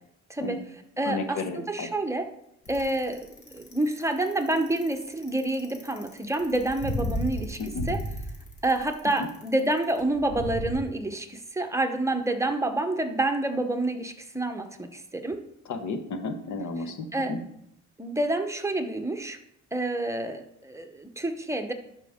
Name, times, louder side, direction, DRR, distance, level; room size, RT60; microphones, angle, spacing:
voice 1, 0.3-2.3 2.7-7.6 7.9-8.0 8.6-15.4 16.8-17.4 18.0-19.4 19.7-21.7, right 2 dB, 10° right, 5 dB, 0.9 m, -28 dB
voice 2, 1.1-1.9 7.6-7.8 15.7-17.4, left 3 dB, 75° left, 8 dB, 1.2 m, -33 dB
Bicycle, 2.6-10.7, left 1 dB, 50° left, 2.0 m, -34 dB
11.5 x 5.1 x 3.6 m, 0.79 s
cardioid pair, 90°, 30 cm